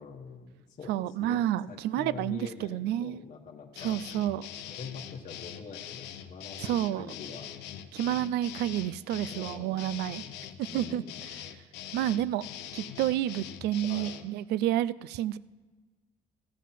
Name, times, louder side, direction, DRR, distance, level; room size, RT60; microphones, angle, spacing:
voice 1, 0.0-0.9 1.2-4.0 4.7-7.5 8.0-8.2 9.2-9.8 10.7-11.2 13.8-14.2, left 5 dB, 50° left, 0 dB, 1.2 m, -45 dB
voice 2, 0.9-3.2 3.8-4.5 6.6-7.1 7.9-10.2 10.6-11.0 11.3-11.4 11.9-12.5 12.7-15.4, right 12 dB, 80° right, 19 dB, 0.4 m, -30 dB
sound 1, 3.8-14.3, left 10 dB, 90° left, 0.7 m, -43 dB
15.0 x 7.4 x 5.8 m, 1.3 s
cardioid pair, 110°, 17 cm